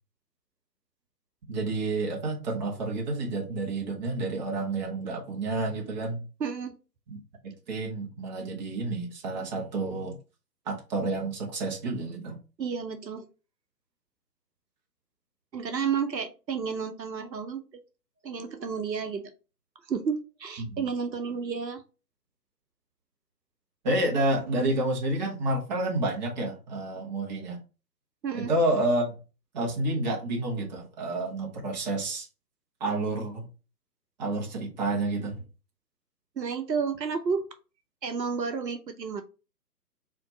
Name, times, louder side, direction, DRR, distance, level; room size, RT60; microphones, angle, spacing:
voice 1, 1.5-6.2 7.1-7.2 7.4-10.1 10.7-12.4 20.6-20.9 23.8-27.6 28.3-29.2 29.5-32.3 32.8-33.4 34.2-35.4, right 2 dB, 25° right, 0 dB, 1.1 m, -29 dB
voice 2, 6.4-6.7 12.6-13.3 15.5-17.6 18.2-19.3 19.9-21.8 28.2-28.5 36.4-37.5 38.0-39.2, right 6 dB, 80° right, 7 dB, 0.9 m, -31 dB
4.2 x 3.0 x 3.9 m, 0.32 s
figure-of-eight pair, 140°, 50 cm